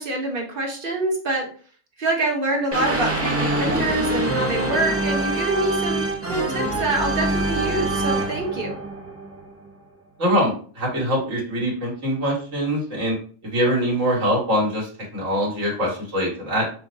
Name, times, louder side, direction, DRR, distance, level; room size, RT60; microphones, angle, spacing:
voice 1, 0.0-1.5 2.0-8.8, right 2 dB, 45° right, 1 dB, 1.1 m, -26 dB
sound 1, 2.7-9.7, right 2 dB, 20° right, 0.4 m, -25 dB
voice 2, 10.2-13.2 13.5-16.7, equal, 80° right, -3 dB, 2.0 m, -23 dB
6.0 x 2.1 x 2.7 m, 0.43 s
omnidirectional pair, 1.3 m